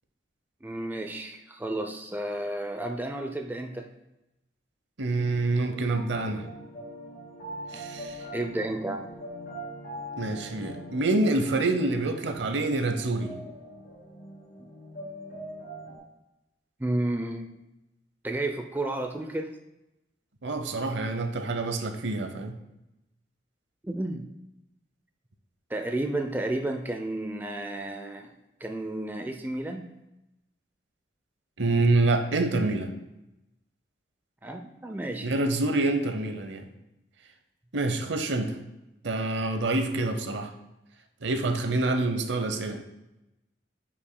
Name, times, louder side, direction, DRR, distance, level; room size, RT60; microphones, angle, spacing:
voice 1, 0.6-3.9 8.3-9.1 16.8-17.5 18.2-19.5 23.8-24.2 25.7-28.3 28.6-29.9 34.4-35.3, right 1 dB, 10° right, 4 dB, 0.4 m, -32 dB
voice 2, 5.0-6.4 7.7-8.2 10.2-13.3 20.4-22.5 31.6-32.9 35.2-36.7 37.7-38.5 39.0-40.5 41.2-42.8, right 2 dB, 75° right, 7 dB, 0.7 m, -26 dB
sound 1, 5.2-16.0, equal, 50° left, 1.5 m, -42 dB
9.3 x 5.9 x 2.2 m, 0.93 s
head